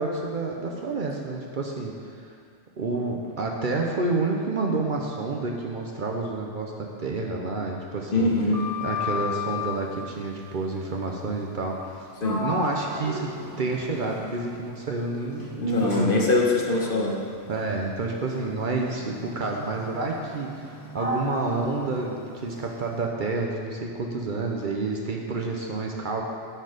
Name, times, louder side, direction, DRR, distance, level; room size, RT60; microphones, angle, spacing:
voice 1, 0.0-1.9 2.8-8.3 8.8-12.1 12.4-16.2 17.5-26.2, right 3 dB, 50° right, 0 dB, 0.8 m, -29 dB
voice 2, 8.1-8.6 12.2-12.4 15.6-17.1, left 2 dB, 50° left, -1 dB, 1.1 m, -22 dB
Sliding door, 8.3-9.9 11.7-11.9 12.2-14.7 15.3-22.8, left 3 dB, 20° left, 1.0 m, -35 dB
9.9 x 4.5 x 4.9 m, 2.3 s
omnidirectional pair, 1.2 m